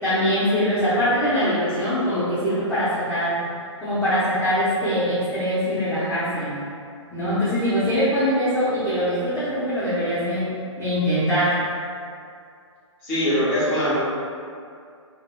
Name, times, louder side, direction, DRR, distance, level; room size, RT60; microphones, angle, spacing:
voice 1, 0.0-3.4 3.8-6.6 7.1-11.6, equal, 15° left, -15 dB, 0.8 m, -23 dB
voice 2, 13.0-13.9, equal, 35° left, -10 dB, 1.1 m, -22 dB
2.8 x 2.6 x 2.2 m, 2.4 s
figure-of-eight pair, 125°, 16 cm